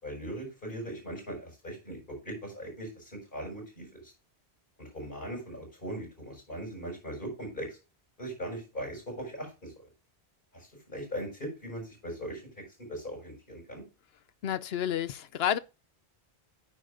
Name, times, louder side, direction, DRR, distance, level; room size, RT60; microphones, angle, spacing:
voice 1, 0.0-4.1 4.8-7.8 8.2-9.9 10.5-12.6 12.9-13.8, right 1 dB, 55° left, 6.8 m, -40 dB
voice 2, 14.4-15.6, left 9 dB, 75° left, 0.9 m, -30 dB
10.0 x 9.4 x 2.6 m
omnidirectional pair, 1.1 m